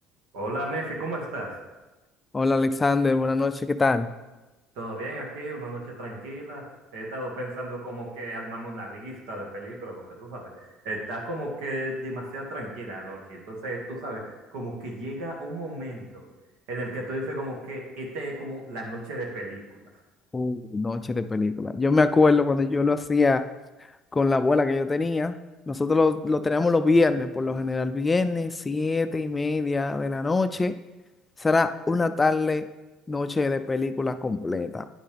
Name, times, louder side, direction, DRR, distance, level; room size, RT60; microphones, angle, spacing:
voice 1, 0.3-1.6 4.8-16.2 16.7-19.6 19.9-20.0, right 1 dB, 80° right, 0 dB, 1.9 m, -34 dB
voice 2, 2.3-4.1 20.3-23.5 24.1-25.4 25.7-30.8 31.4-32.7 33.1-34.9, left 3 dB, 20° left, 10 dB, 0.3 m, -23 dB
9.8 x 5.5 x 3.4 m, 1.1 s
cardioid pair, 110°, 0 cm